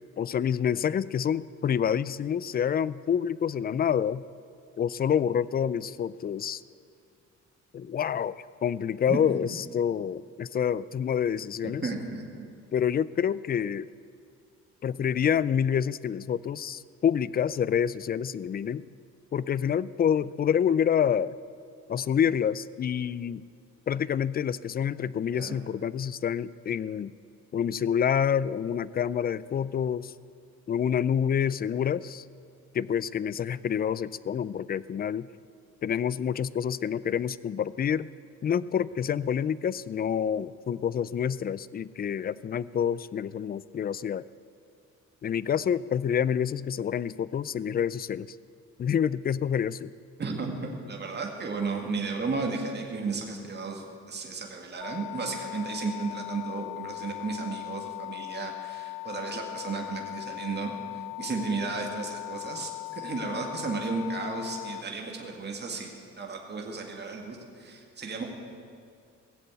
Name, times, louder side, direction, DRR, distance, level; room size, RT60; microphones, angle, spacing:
voice 1, 0.2-4.2 4.8-6.6 7.7-11.9 12.7-13.9 14.8-18.8 19.3-21.3 21.9-23.4 23.9-27.1 27.5-30.1 30.7-32.2 32.7-35.3 35.8-38.1 38.4-44.2 45.2-48.3 48.8-49.9, left 8 dB, 30° left, 19 dB, 0.4 m, -27 dB
voice 2, 11.6-12.5 25.3-25.6 50.2-68.2, right 4 dB, 35° right, 1 dB, 2.0 m, -34 dB
sound 1, 54.8-64.8, left 22 dB, 80° left, 0.8 m, -39 dB
17.5 x 7.7 x 8.1 m, 2.4 s
cardioid pair, 90°, 30 cm